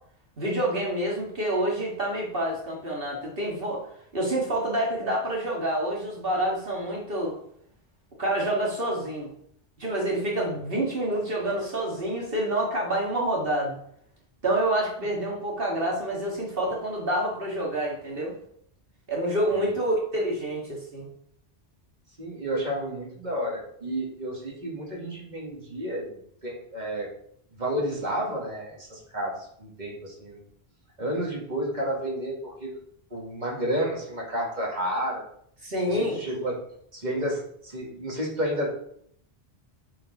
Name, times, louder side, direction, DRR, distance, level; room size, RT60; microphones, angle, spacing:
voice 1, 0.4-3.8 4.1-7.4 8.2-9.3 9.8-13.8 14.4-18.3 19.1-21.1 35.6-36.2, right 1 dB, 60° right, -2 dB, 2.1 m, -27 dB
voice 2, 22.2-26.1 26.4-27.1 27.6-29.3 29.6-30.4 31.0-32.8 33.1-35.2 35.9-36.5 36.9-38.7, equal, 45° right, -3 dB, 2.4 m, -31 dB
7.3 x 4.6 x 5.3 m, 0.66 s
omnidirectional pair, 1.1 m